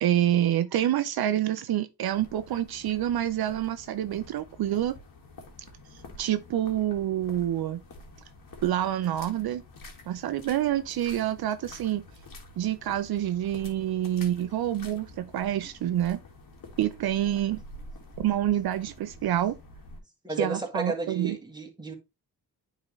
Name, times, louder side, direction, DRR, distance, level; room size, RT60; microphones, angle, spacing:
voice 1, 0.0-5.0 6.2-7.8 8.6-9.6 10.1-12.0 12.6-16.2 16.8-17.6 18.2-19.6 20.4-21.4, right 12 dB, 70° right, 0.6 m, -27 dB
sound 1, 2.1-20.0, left 2 dB, 60° left, 1.9 m, -48 dB
voice 2, 20.2-22.0, right 3 dB, 10° right, 1.9 m, -32 dB
9.6 x 3.8 x 3.1 m
cardioid pair, 105°, 38 cm